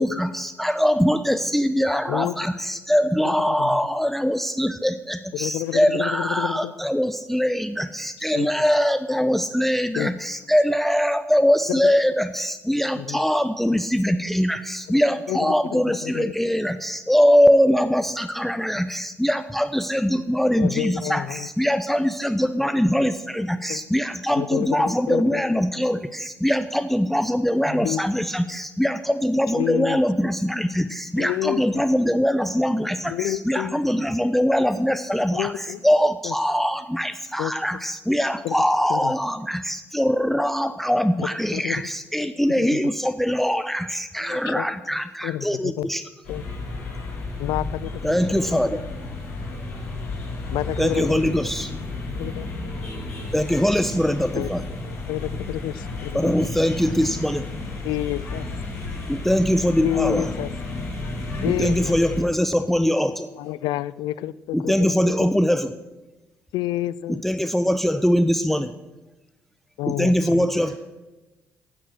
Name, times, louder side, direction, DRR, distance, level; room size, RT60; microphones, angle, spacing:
voice 1, 0.0-46.0 48.0-48.8 50.8-51.8 53.3-54.6 56.1-57.5 59.1-60.3 61.1-63.3 64.5-65.7 67.1-68.7 69.9-70.7, equal, 5° left, 11 dB, 0.7 m, -22 dB
voice 2, 2.1-2.5 3.5-3.8 5.3-6.7 8.3-8.5 10.0-10.1 11.7-11.9 13.0-13.2 15.3-16.3 20.6-21.5 23.7-23.8 24.4-25.4 27.8-28.0 29.5-30.0 31.2-31.8 33.1-33.8 35.3-35.8 36.2-36.3 37.4-37.5 38.4-38.6 38.9-39.1 41.2-41.8 42.6-42.8 44.2-44.7 45.2-45.9 46.3-46.5 47.4-48.7 50.5-51.3 52.1-52.5 54.3-54.5 54.8-56.5 57.8-58.5 59.8-60.5 61.4-61.9 63.4-65.3 66.5-67.2 69.8-70.4, left 14 dB, 70° left, 18 dB, 0.4 m, -29 dB
sound 1, 46.2-62.2, left 2 dB, 85° left, 4.4 m, -32 dB
voice 3, 58.6-59.2 70.6-70.8, right 1 dB, 45° right, 1 dB, 5.6 m, -42 dB
15.5 x 9.2 x 6.3 m, 1.1 s
hypercardioid pair, 45°, 8 cm